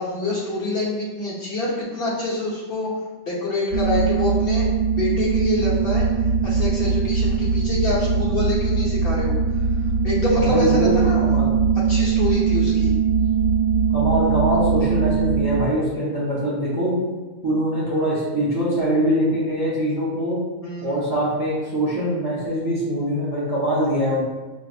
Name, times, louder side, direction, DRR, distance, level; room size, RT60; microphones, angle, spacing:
voice 1, 0.0-2.9 3.3-4.6 4.9-9.7 10.0-11.4 11.7-13.0 20.6-21.0, left 2 dB, 50° left, -6 dB, 1.1 m, -26 dB
sound 1, 3.7-15.7, right 5 dB, 75° right, 1.5 m, -21 dB
voice 2, 10.3-10.9 11.2-11.5 13.9-17.0 17.4-20.4 20.8-24.2, equal, 25° right, -7 dB, 0.6 m, -23 dB
5.2 x 3.1 x 2.4 m, 1.3 s
omnidirectional pair, 1.4 m